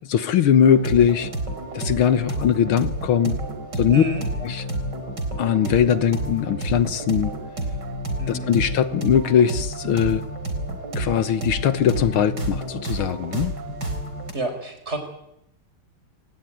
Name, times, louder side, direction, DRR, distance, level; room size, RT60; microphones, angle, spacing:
voice 1, 0.1-1.3 1.7-3.4 3.8-4.0 4.4-4.6 5.4-7.3 8.3-10.2 11.0-13.5, left 8 dB, 75° left, 13 dB, 2.0 m, -20 dB
sound 1, 0.6-14.3, right 1 dB, 50° right, 4.4 m, -30 dB
voice 2, 3.9-4.3 8.2-8.5 14.3-15.0, right 1 dB, 30° right, 7 dB, 5.1 m, -29 dB
27.5 x 19.0 x 9.3 m, 0.81 s
omnidirectional pair, 2.3 m